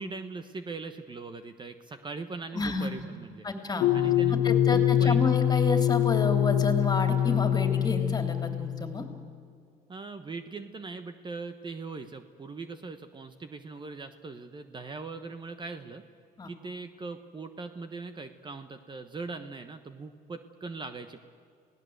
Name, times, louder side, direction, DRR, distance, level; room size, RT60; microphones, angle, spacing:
voice 1, 0.0-3.5 3.9-5.4 9.9-16.0 16.4-21.2, right 3 dB, 30° right, 9 dB, 1.2 m, -40 dB
voice 2, 2.5-2.9 3.4-3.9 4.4-9.0 16.4-16.5, left 3 dB, 25° left, 6 dB, 3.1 m, -30 dB
sound 1, 3.8-9.0, left 11 dB, 65° left, 1.4 m, -24 dB
27.5 x 18.0 x 8.0 m, 2.3 s
cardioid pair, 110°, 17 cm